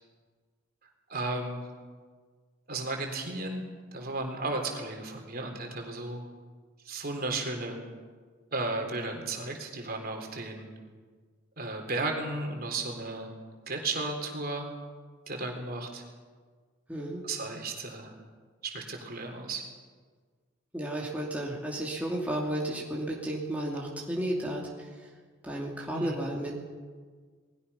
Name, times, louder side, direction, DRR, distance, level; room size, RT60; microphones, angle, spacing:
voice 1, 1.1-1.6 2.7-3.6 3.9-6.2 6.8-7.8 8.5-10.7 11.6-13.3 13.7-14.7 15.3-16.0 17.2-18.1 18.6-19.7 25.9-26.2, right 2 dB, 45° right, 2 dB, 3.8 m, -34 dB
voice 2, 16.9-17.2 20.7-24.9 25.4-26.5, right 1 dB, 5° right, -3 dB, 2.7 m, -33 dB
29.0 x 20.5 x 5.7 m, 1.5 s
head